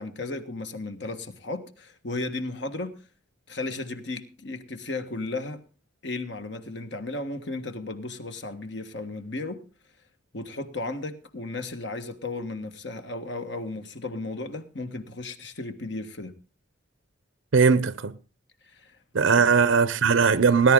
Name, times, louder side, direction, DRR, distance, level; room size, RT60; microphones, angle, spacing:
voice 1, 0.0-2.9 3.5-5.6 6.0-9.6 10.3-16.3 18.7-19.0 19.4-19.5, left 2 dB, 60° left, 1.6 m, -34 dB
voice 2, 17.5-18.2 19.1-20.7, right 5 dB, 80° right, 0.7 m, -19 dB
19.0 x 10.5 x 3.7 m
head